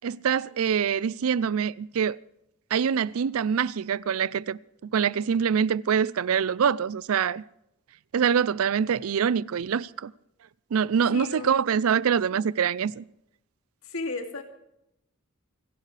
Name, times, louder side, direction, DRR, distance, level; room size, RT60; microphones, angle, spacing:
voice 1, 0.0-2.2 2.7-4.6 4.9-7.4 8.1-10.1 10.7-13.0, right 7 dB, 85° right, 0.4 m, -25 dB
voice 2, 11.1-11.9 13.8-14.4, left 3 dB, 80° left, 2.6 m, -35 dB
30.0 x 11.5 x 3.3 m
head